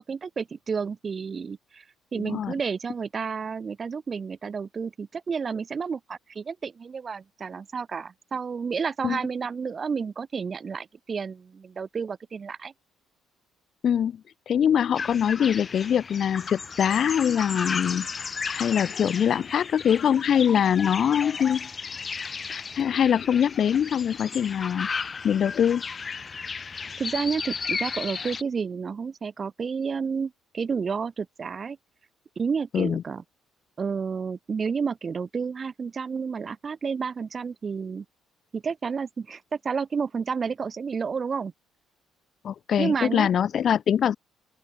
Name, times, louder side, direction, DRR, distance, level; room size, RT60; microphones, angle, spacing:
voice 1, 0.0-1.8 2.1-12.7 27.0-31.8 32.4-33.2 33.8-38.0 38.5-41.5 42.8-43.3, right 5 dB, 35° right, 0.8 m, -30 dB
voice 2, 2.2-2.5 9.0-9.2 13.8-14.2 14.5-18.1 18.5-21.7 22.5-24.9 25.2-25.8 32.7-33.0 42.4-44.2, left 8 dB, 50° left, 0.5 m, -23 dB
sound 1, 14.9-28.4, left 5 dB, 30° left, 2.1 m, -34 dB
open air
cardioid pair, 110°, 0 cm